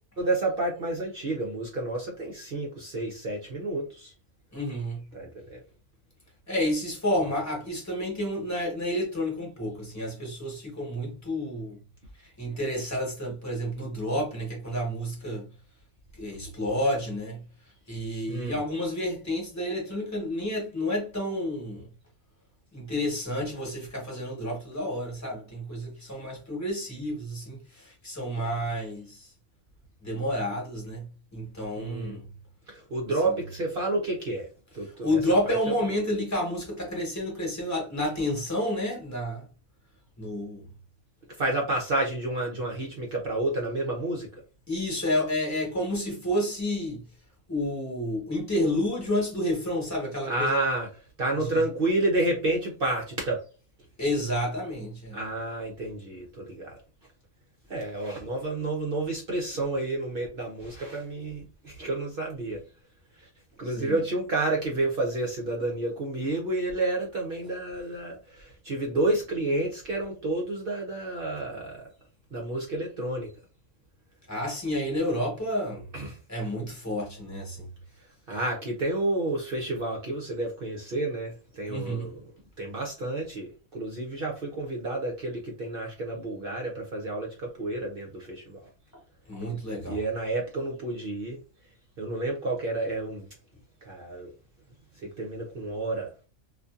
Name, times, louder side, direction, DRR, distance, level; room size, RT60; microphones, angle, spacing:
voice 1, 0.2-4.1 5.1-5.6 18.3-18.6 31.8-32.2 32.7-34.5 34.7-35.2 35.5-35.6 41.4-44.3 50.3-50.9 51.2-53.4 55.1-56.8 57.7-62.6 63.2-63.3 63.6-71.9 72.3-73.3 75.9-76.2 78.3-82.2 82.6-88.7 89.9-91.4 92.0-93.3 93.8-94.3 95.0-96.1, right 2 dB, 55° right, 0.7 m, -30 dB
voice 2, 4.5-5.0 6.5-11.8 12.2-15.5 16.1-17.4 17.9-21.9 22.7-29.3 30.0-32.2 33.2-33.3 34.8-39.4 40.2-40.7 44.7-47.0 47.5-50.6 51.4-51.6 54.0-55.2 63.7-64.0 74.3-75.9 76.3-77.7 81.7-82.1 89.3-90.0, left 1 dB, 15° left, 1.0 m, -30 dB
2.6 x 2.4 x 2.3 m
omnidirectional pair, 1.4 m